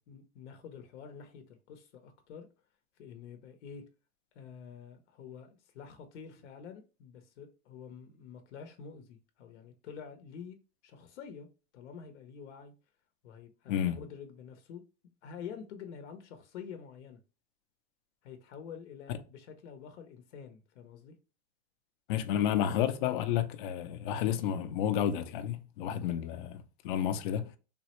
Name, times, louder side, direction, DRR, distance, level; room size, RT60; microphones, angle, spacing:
voice 1, 0.1-2.5 3.0-3.8 4.3-11.5 11.7-12.7 13.2-14.8 15.2-17.2 18.2-21.1, left 7 dB, 85° left, 0.7 m, -48 dB
voice 2, 22.1-27.5, left 10 dB, 50° left, 0.4 m, -31 dB
3.5 x 2.0 x 2.9 m
supercardioid pair, 165°, 34 cm